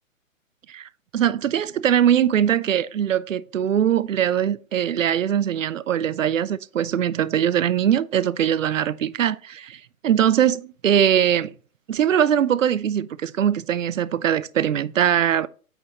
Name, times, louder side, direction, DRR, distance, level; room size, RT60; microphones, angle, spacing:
voice 1, 0.7-11.5 11.9-15.5, right 9 dB, 65° right, 0.6 m, -21 dB
8.7 x 5.2 x 2.9 m
figure-of-eight pair, 130°, 42 cm